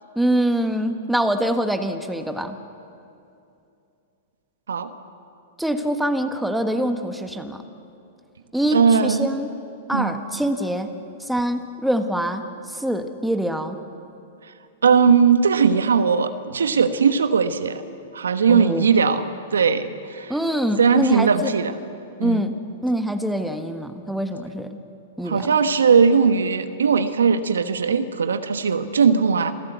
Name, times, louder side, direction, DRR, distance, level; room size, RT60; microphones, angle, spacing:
voice 1, 0.1-2.5 5.6-7.6 8.5-9.5 9.9-10.9 11.3-12.4 12.7-13.8 18.5-18.9 20.3-21.5 22.2-22.5 22.8-24.8 25.2-25.5, right 1 dB, ahead, 6 dB, 1.6 m, -24 dB
voice 2, 8.7-9.3 9.9-10.2 14.8-17.8 18.1-19.2 19.5-20.3 20.8-21.7 22.2-22.5 25.3-29.5, right 6 dB, 80° right, 10 dB, 1.2 m, -19 dB
28.0 x 16.5 x 8.2 m, 2.6 s
hypercardioid pair, 110°, 0 cm